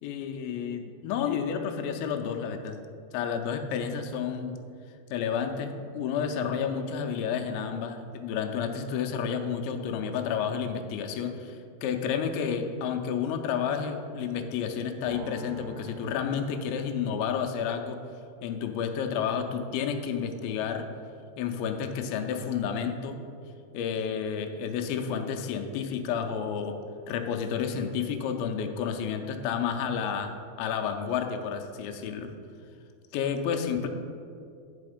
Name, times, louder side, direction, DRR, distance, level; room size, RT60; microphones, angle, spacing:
voice 1, 0.0-2.8 3.1-4.6 5.1-18.0 18.4-20.9 21.4-23.2 23.7-26.7 27.1-30.3 30.6-32.3 33.1-33.9, left 7 dB, 85° left, 4 dB, 2.1 m, -30 dB
sound 1, 15.1-17.5, right 2 dB, 80° right, 2.6 m, -45 dB
10.0 x 4.2 x 5.0 m, 2.4 s
omnidirectional pair, 4.8 m